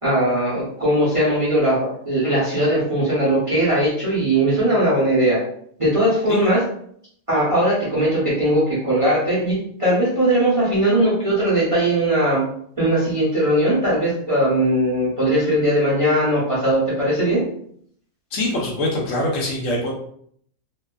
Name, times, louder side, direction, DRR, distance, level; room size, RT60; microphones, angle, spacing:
voice 1, 0.0-5.4 5.8-6.7 7.3-12.4 12.8-17.4, right 1 dB, 30° right, -8 dB, 0.7 m, -19 dB
voice 2, 18.3-19.9, left 1 dB, 70° left, -2 dB, 1.0 m, -23 dB
2.7 x 2.2 x 2.3 m, 0.64 s
omnidirectional pair, 1.5 m